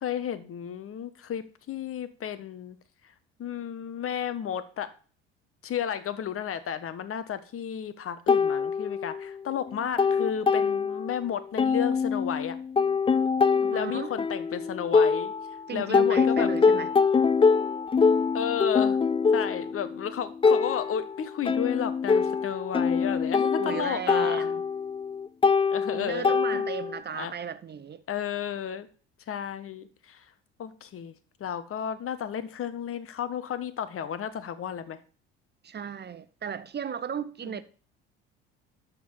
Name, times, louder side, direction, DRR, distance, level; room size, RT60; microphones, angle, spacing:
voice 1, 0.0-2.8 3.4-4.9 5.6-12.6 13.7-15.3 15.7-16.5 18.3-19.0 19.3-24.5 25.7-26.7 27.1-27.3 28.1-28.9 29.3-30.3 30.6-31.1 31.4-35.0 37.4-37.6, left 9 dB, 45° left, 1.4 m, -33 dB
sound 1, 8.3-9.4 9.7-11.2 11.6-15.6 15.9-27.0, left 5 dB, 15° left, 0.5 m, -24 dB
voice 2, 13.5-14.1 15.7-16.9 23.6-24.6 25.9-28.0 35.6-37.6, right 7 dB, 35° right, 1.0 m, -35 dB
12.5 x 4.4 x 7.3 m
hypercardioid pair, 65°, 31 cm